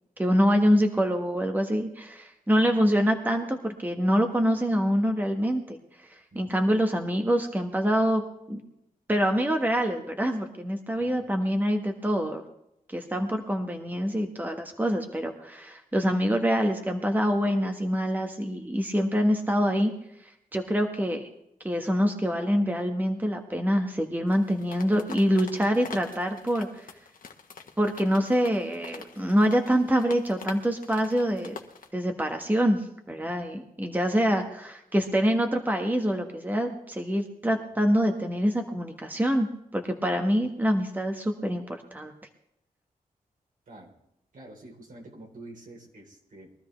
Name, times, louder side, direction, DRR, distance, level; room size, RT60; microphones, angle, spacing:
voice 1, 0.2-8.6 9.1-12.4 12.9-19.9 20.2-21.3 21.6-26.9 27.8-31.6 31.9-39.5 39.7-42.1, equal, 10° right, 4 dB, 1.5 m, -25 dB
voice 2, 10.9-11.5 13.1-13.3 33.2-33.4 34.3-34.4 37.8-38.0 38.3-38.4 43.7-43.9 44.3-46.5, right 1 dB, 65° right, 0 dB, 3.9 m, -48 dB
sound 1, 24.3-31.9, left 5 dB, 70° left, 1.4 m, -45 dB
22.0 x 13.0 x 3.4 m, 0.81 s
cardioid pair, 85°, 15 cm